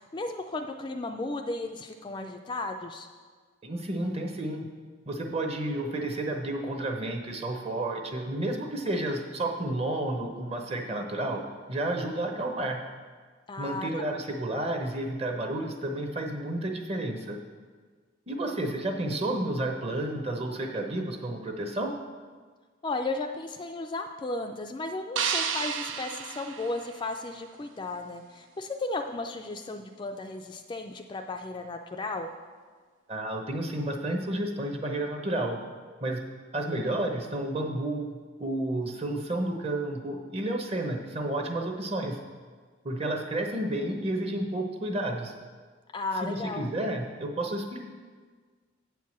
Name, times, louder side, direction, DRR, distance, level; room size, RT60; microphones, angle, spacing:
voice 1, 0.0-3.1 13.5-13.9 14.2-14.3 22.8-32.3 45.9-46.7, left 2 dB, 25° left, 5 dB, 0.3 m, -34 dB
voice 2, 3.6-4.7 5.1-12.8 13.6-17.4 18.3-22.0 33.1-35.6 36.0-36.2 36.5-42.2 42.8-45.3 46.2-47.8, right 1 dB, 30° right, 3 dB, 0.8 m, -31 dB
sound 1, 25.2-27.4, right 7 dB, 90° right, 0.6 m, -32 dB
7.8 x 4.7 x 7.1 m, 1.5 s
head